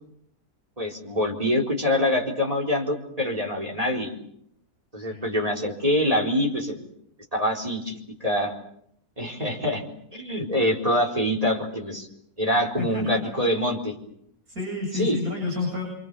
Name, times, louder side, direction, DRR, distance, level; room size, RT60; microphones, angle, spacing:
voice 1, 0.8-4.1 4.9-6.9 7.3-8.5 9.2-9.8 10.1-12.1 12.4-13.9 14.9-15.2, left 1 dB, 20° right, 1 dB, 4.2 m, -25 dB
voice 2, 12.8-13.2 14.5-15.8, left 3 dB, 60° right, -1 dB, 8.1 m, -29 dB
27.0 x 26.0 x 6.9 m, 0.71 s
omnidirectional pair, 1.7 m